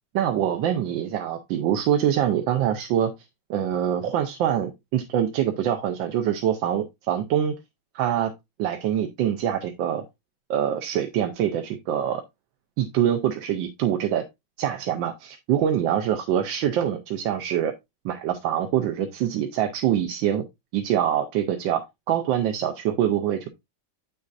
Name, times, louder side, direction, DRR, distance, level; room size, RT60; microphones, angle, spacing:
voice 1, 0.1-3.1 3.5-7.5 7.9-8.3 8.6-10.0 10.5-12.2 12.8-14.2 14.6-17.7 18.0-20.4 20.7-23.5, right 10 dB, 85° right, 1.5 m, -24 dB
8.3 x 6.4 x 2.5 m
omnidirectional pair, 2.0 m